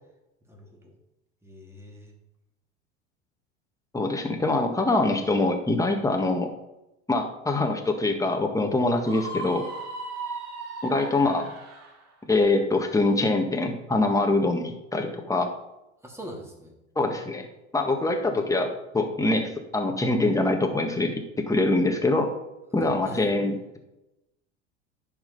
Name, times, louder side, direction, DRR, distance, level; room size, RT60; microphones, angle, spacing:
voice 1, 0.5-1.0 1.4-2.1 16.0-16.7 22.7-23.3, equal, 5° right, 0 dB, 2.7 m, -42 dB
voice 2, 3.9-6.5 7.1-9.6 10.8-11.5 12.2-15.5 16.9-17.5 17.7-22.3 22.7-23.8, left 2 dB, 10° left, 3 dB, 1.7 m, -24 dB
Screaming, 9.0-12.0, right 3 dB, 45° right, 3.1 m, -36 dB
10.5 x 5.1 x 5.4 m, 0.91 s
hypercardioid pair, 85°, 36 cm